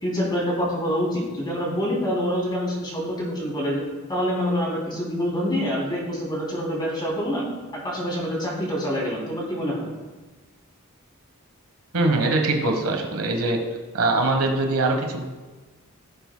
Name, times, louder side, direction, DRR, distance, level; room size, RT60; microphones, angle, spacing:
voice 1, 0.0-3.8 4.1-7.5 7.8-9.9, equal, 20° left, -4 dB, 2.9 m, -26 dB
voice 2, 11.9-13.6 13.9-15.2, right 2 dB, 85° right, 3 dB, 1.2 m, -22 dB
15.5 x 7.2 x 2.2 m, 1.2 s
head